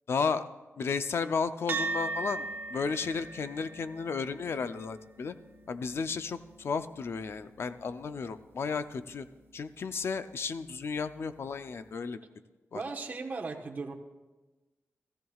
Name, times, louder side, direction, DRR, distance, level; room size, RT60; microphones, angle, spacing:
voice 1, 0.1-0.4 0.8-5.3 5.7-9.3 9.5-12.2 12.7-12.8, left 5 dB, 55° left, 11 dB, 0.5 m, -33 dB
sound 1, 1.7-10.3, right 3 dB, 50° right, 0.9 m, -41 dB
voice 2, 12.7-13.9, right 4 dB, 35° right, 1 dB, 1.2 m, -37 dB
17.5 x 14.0 x 2.4 m, 1.2 s
wide cardioid pair, 155°, 5 cm